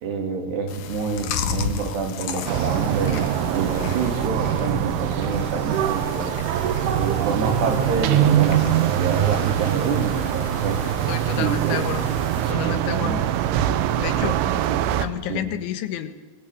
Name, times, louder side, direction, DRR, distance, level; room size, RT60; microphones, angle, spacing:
voice 1, 0.0-6.3 6.9-10.8 11.4-11.6 12.6-13.2 14.2-14.6 15.3-15.5, right 4 dB, 65° right, 3 dB, 5.4 m, -27 dB
Chewing mastication, 0.7-12.5, left 7 dB, 65° left, 2.0 m, -34 dB
sound 1, 2.5-15.1, right 11 dB, 90° right, 3.6 m, -23 dB
voice 2, 10.8-12.1 12.5-13.2 14.0-14.4 15.0-16.1, left 10 dB, 85° left, 10 dB, 3.9 m, -30 dB
23.5 x 21.5 x 8.7 m, 1.3 s
omnidirectional pair, 5.3 m